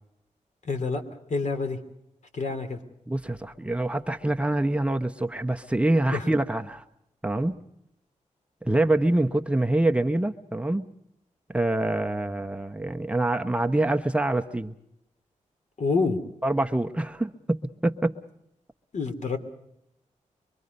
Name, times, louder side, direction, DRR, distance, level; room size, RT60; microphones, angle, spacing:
voice 1, 0.6-1.0 1.3-1.8 2.3-2.8 6.1-6.2 15.8-16.2 18.9-19.4, left 4 dB, 70° left, 6 dB, 3.1 m, -27 dB
voice 2, 3.1-6.8 7.2-7.6 8.6-10.9 11.5-14.7 16.4-18.2, right 1 dB, 10° right, 4 dB, 1.0 m, -25 dB
25.0 x 24.0 x 5.4 m, 0.81 s
wide cardioid pair, 125°, 13 cm